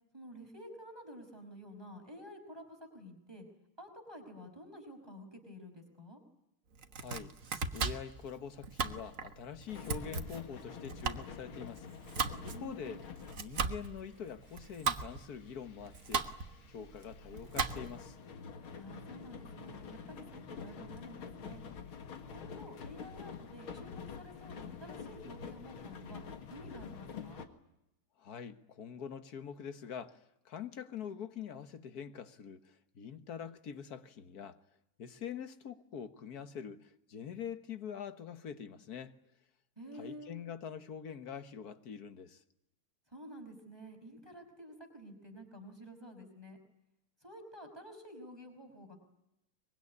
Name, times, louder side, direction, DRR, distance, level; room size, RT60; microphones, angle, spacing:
voice 1, 0.1-3.5 3.8-6.2 12.5-13.1 18.7-21.6 22.3-26.2 26.5-27.5 39.8-40.3 43.1-46.6 47.2-49.0, equal, 10° right, 5.3 m, -50 dB
Domestic sounds home sounds, 6.7-18.1, right 5 dB, 45° right, 1.5 m, -38 dB
voice 2, 7.0-7.4 7.7-11.9 12.4-13.0 13.4-16.3 16.7-18.2 28.2-34.6 35.0-39.1 40.0-42.4, left 7 dB, 50° left, 1.7 m, -45 dB
sound 1, 9.7-27.5, left 6 dB, 75° left, 2.6 m, -48 dB
24.0 x 22.5 x 9.8 m
omnidirectional pair, 2.3 m